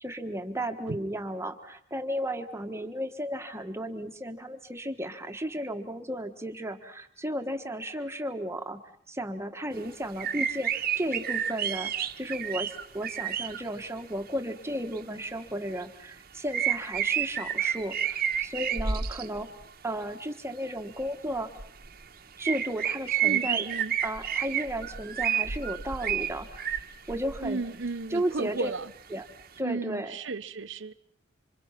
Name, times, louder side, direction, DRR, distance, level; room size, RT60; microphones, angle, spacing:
voice 1, 0.0-8.8 9.1-19.5 19.8-21.5 22.4-23.7 24.0-27.6 28.1-28.7 29.1-29.3 29.6-30.2, right 1 dB, 15° right, 6 dB, 1.4 m, -34 dB
sound 1, 9.7-9.8 10.2-13.6 14.4-14.5 14.9-15.4 15.7-15.8 16.5-19.6 20.9-21.1 21.3-22.1 22.4-27.9 28.3-28.4 28.7-28.8 29.5-29.6, right 9 dB, 50° right, 1.2 m, -30 dB
voice 2, 23.2-23.9 27.4-28.9 29.6-30.9, right 3 dB, 65° right, 12 dB, 0.9 m, -34 dB
27.5 x 26.0 x 5.8 m, 0.65 s
head